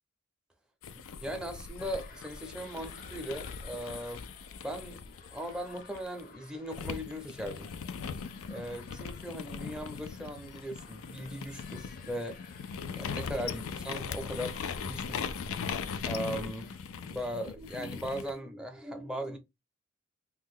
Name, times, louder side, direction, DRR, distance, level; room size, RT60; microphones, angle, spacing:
sound 1, 0.8-6.2 6.7-18.3, left 6 dB, 85° left, 0.4 m, -40 dB
voice 1, 1.2-4.2 4.6-7.7 8.5-12.4 12.9-15.4 16.0-16.7 17.0-19.4, equal, 5° right, 0.5 m, -38 dB
sound 2, 1.8-16.8, left 4 dB, 40° left, 0.6 m, -56 dB
2.8 x 2.1 x 3.6 m
head